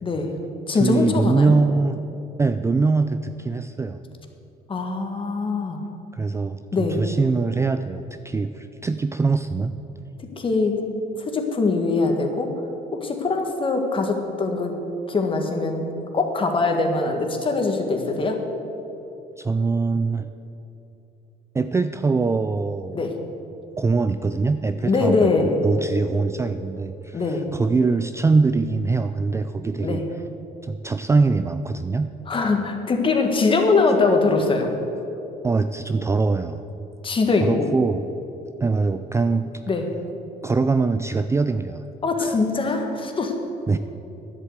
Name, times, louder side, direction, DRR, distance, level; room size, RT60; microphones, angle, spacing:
voice 1, 0.0-0.3 0.7-1.6 4.7-5.8 6.7-7.0 10.4-10.8 11.2-12.5 12.9-14.8 15.1-15.9 16.1-18.4 22.9-23.1 24.9-25.6 27.1-27.4 29.8-30.0 32.3-34.7 37.0-37.7 39.7-39.8 42.0-43.3, left 3 dB, 30° left, 4 dB, 1.7 m, -22 dB
voice 2, 0.7-2.0 2.4-4.0 6.1-9.7 19.4-20.3 21.5-23.0 23.8-30.0 30.6-32.1 35.4-36.6 37.4-38.0 38.6-39.5 40.4-41.8 42.2-42.4 43.7-43.8, right 4 dB, 15° right, 10 dB, 0.3 m, -23 dB
11.0 x 8.2 x 8.1 m, 3.0 s
cardioid pair, 110°, 17 cm